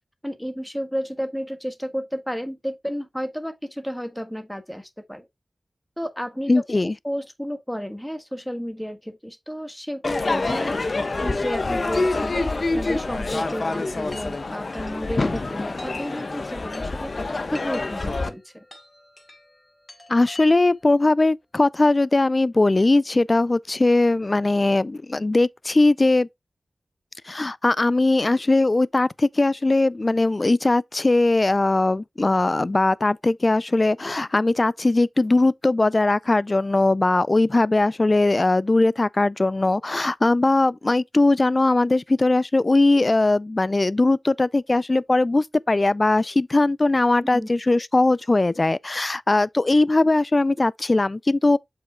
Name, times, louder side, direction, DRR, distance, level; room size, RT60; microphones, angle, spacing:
voice 1, 0.2-5.3 6.0-17.1 17.5-18.6 47.2-47.5, equal, 5° left, 1.5 m, -32 dB
voice 2, 6.5-6.9 20.1-26.3 27.3-51.6, left 2 dB, 40° left, 0.4 m, -20 dB
Crowd / Fireworks, 10.0-18.3, left 3 dB, 60° left, 1.1 m, -26 dB
Chime, 12.8-21.0, left 1 dB, 20° left, 3.3 m, -45 dB
7.3 x 5.7 x 2.3 m
cardioid pair, 50°, 0 cm